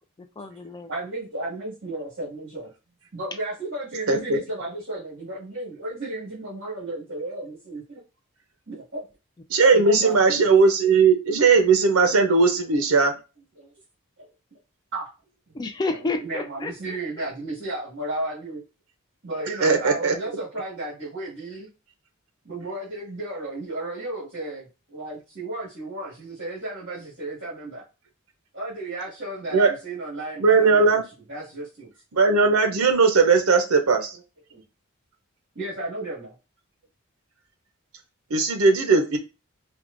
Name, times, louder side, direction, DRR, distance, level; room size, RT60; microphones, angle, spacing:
voice 1, 0.2-0.9 9.8-10.2 15.5-17.3, left 3 dB, 20° left, 8 dB, 0.3 m, -31 dB
voice 2, 0.9-2.7 3.1-8.0 8.7-9.1 9.6-10.4 13.6-13.7 14.2-14.3 14.9-15.1 16.2-18.6 19.2-21.7 22.4-27.8 28.5-31.0 31.3-31.9 34.5-34.6 35.6-36.3, right 2 dB, 55° right, -9 dB, 1.7 m, -33 dB
voice 3, 4.1-4.4 9.5-13.1 19.6-20.2 29.5-29.7 30.4-31.0 32.1-34.1 38.3-39.2, right 4 dB, 80° right, 5 dB, 0.6 m, -18 dB
4.5 x 2.2 x 2.5 m, 0.30 s
head